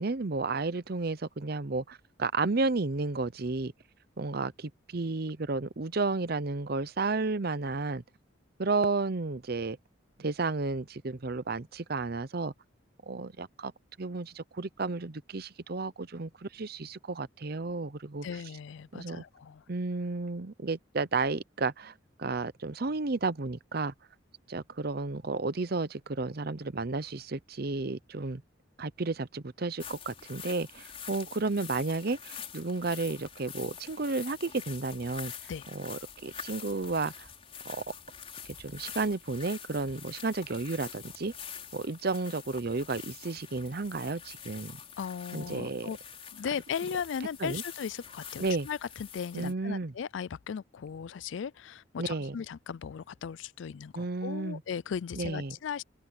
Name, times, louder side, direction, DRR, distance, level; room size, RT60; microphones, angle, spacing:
voice 1, 0.0-3.7 4.2-8.0 8.6-9.8 10.2-12.5 13.1-13.7 14.0-18.3 18.9-19.2 19.7-21.9 22.2-23.9 24.5-28.4 28.8-35.3 35.7-37.3 37.6-37.8 38.5-41.3 41.7-44.8 45.3-45.9 47.4-47.6 48.4-48.7 49.3-49.9 52.0-52.4 54.0-54.6 55.2-55.6, right 3 dB, 50° right, 0.7 m, -32 dB
voice 2, 18.2-19.6 35.5-35.7 45.0-46.0 46.3-55.8, left 7 dB, 70° left, 0.4 m, -37 dB
sound 1, 29.8-49.5, left 7 dB, 30° left, 4.6 m, -46 dB
open air
head